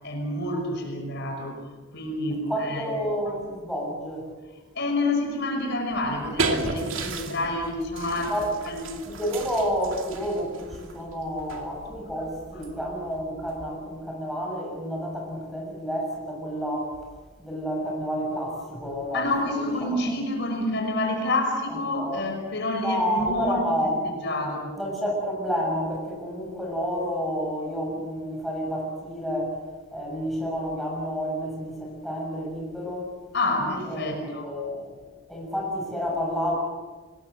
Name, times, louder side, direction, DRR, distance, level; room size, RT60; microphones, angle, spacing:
voice 1, 0.0-1.6 1.9-3.0 4.7-8.3 8.7-9.0 19.1-23.8 24.2-24.7 33.3-34.5, left 2 dB, 55° left, 3 dB, 5.6 m, -28 dB
voice 2, 2.5-4.3 8.3-8.5 9.1-16.9 17.4-20.1 21.7-22.3 22.8-24.0 24.8-29.6 29.9-33.1 33.9-35.0 35.3-36.5, equal, ahead, -3 dB, 6.8 m, -30 dB
sound 1, 5.9-14.0, right 3 dB, 75° right, 2.5 m, -35 dB
26.0 x 20.5 x 7.8 m, 1.3 s
head